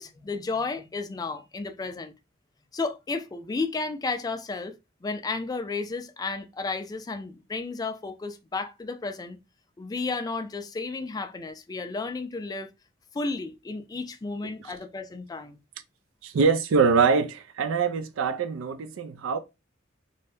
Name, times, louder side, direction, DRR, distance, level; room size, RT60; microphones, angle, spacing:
voice 1, 0.0-2.1 2.7-9.4 9.8-12.7 13.1-15.6, left 3 dB, 20° left, 0.3 m, -33 dB
voice 2, 16.2-19.4, right 5 dB, 80° right, 0.4 m, -24 dB
2.7 x 2.1 x 3.3 m
head